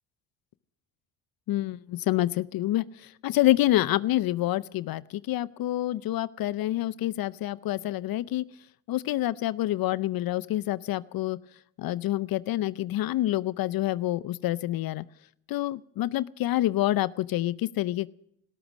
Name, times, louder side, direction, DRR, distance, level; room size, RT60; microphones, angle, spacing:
voice 1, 1.5-8.4 8.9-11.4 11.8-15.0 15.5-18.1, left 15 dB, 65° left, 20 dB, 0.6 m, -27 dB
18.0 x 13.0 x 6.1 m, 0.73 s
supercardioid pair, 65°, 38 cm